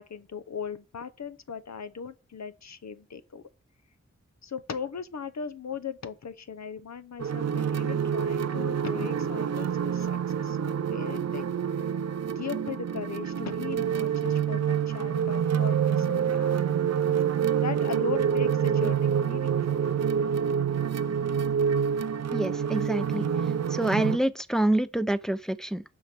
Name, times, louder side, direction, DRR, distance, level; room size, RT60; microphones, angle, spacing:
voice 1, 0.0-3.4 4.4-11.6 12.4-16.7 17.5-19.8, left 6 dB, 65° left, 0.8 m, -38 dB
sound 1, 7.2-24.2, right 8 dB, 60° right, 0.5 m, -27 dB
voice 2, 22.3-23.2 23.7-25.8, right 1 dB, ahead, 0.6 m, -27 dB
6.4 x 5.7 x 6.0 m
wide cardioid pair, 55°, 29 cm